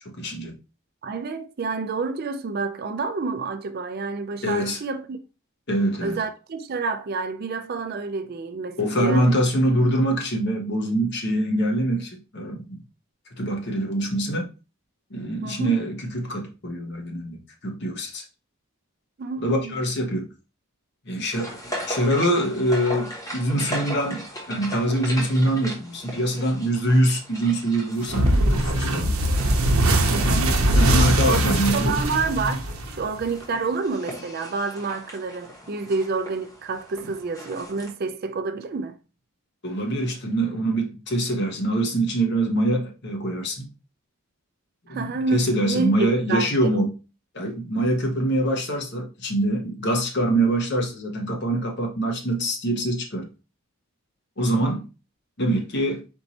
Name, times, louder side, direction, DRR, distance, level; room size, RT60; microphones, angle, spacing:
voice 1, 0.1-0.5 4.4-4.8 5.7-6.2 8.8-12.8 13.4-14.5 15.1-18.2 19.4-20.3 21.1-21.6 21.9-29.2 30.6-32.0 39.6-43.7 44.9-46.9 47.3-53.3 54.4-54.8 55.4-56.0, right 1 dB, 50° left, 1.0 m, -24 dB
voice 2, 1.0-5.2 6.0-9.3 15.4-15.8 19.2-19.8 30.1-30.5 30.9-31.4 31.7-39.0 44.9-46.5, right 4 dB, 45° right, 0.4 m, -28 dB
sound 1, 21.3-37.9, equal, 15° left, 1.2 m, -38 dB
sound 2, 28.1-33.2, right 1 dB, 75° right, 0.8 m, -21 dB
4.5 x 2.7 x 4.1 m
head